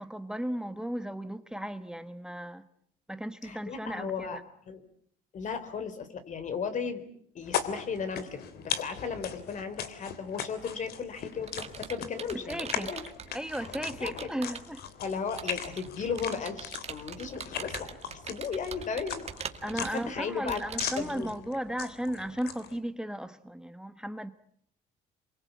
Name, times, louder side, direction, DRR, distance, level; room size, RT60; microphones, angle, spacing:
voice 1, 0.0-2.6 3.1-4.5 12.3-13.0 13.3-14.8 19.6-24.3, equal, 5° right, 1.2 m, -35 dB
voice 2, 3.4-4.4 4.7-4.8 5.3-7.0 7.3-13.0 13.5-13.7 14.0-14.3 15.0-19.3 19.7-20.6 21.0-21.3, left 6 dB, 45° left, 4.2 m, -35 dB
sound 1, 7.4-22.8, left 8 dB, 70° left, 3.2 m, -39 dB
Computer keyboard, 10.7-14.8 15.4-21.1, right 7 dB, 40° right, 2.2 m, -43 dB
28.0 x 24.0 x 8.5 m
cardioid pair, 110°, 17 cm